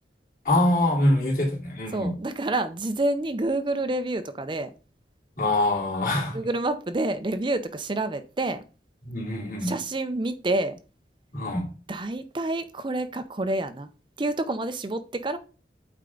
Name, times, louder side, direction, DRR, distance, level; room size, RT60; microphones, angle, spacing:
voice 1, 0.4-2.1 5.4-6.4 9.0-9.7 11.3-11.7, left 1 dB, 50° left, 2.9 m, -24 dB
voice 2, 1.9-4.7 6.3-8.6 9.6-10.7 11.9-13.9 14.2-15.4, right 2 dB, 30° right, 0.6 m, -28 dB
8.4 x 4.5 x 3.8 m
head